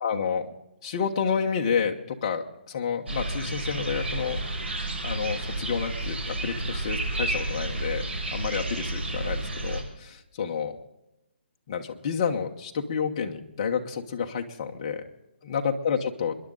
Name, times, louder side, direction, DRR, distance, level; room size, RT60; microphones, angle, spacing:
voice 1, 0.0-0.5 0.8-4.4 5.0-10.8 11.7-15.1 15.4-16.4, left 6 dB, 25° left, 2 dB, 1.1 m, -30 dB
sound 1, 3.1-9.8, right 2 dB, 75° right, 5.9 m, -31 dB
28.0 x 11.0 x 3.9 m, 0.93 s
hypercardioid pair, 175°, 6 cm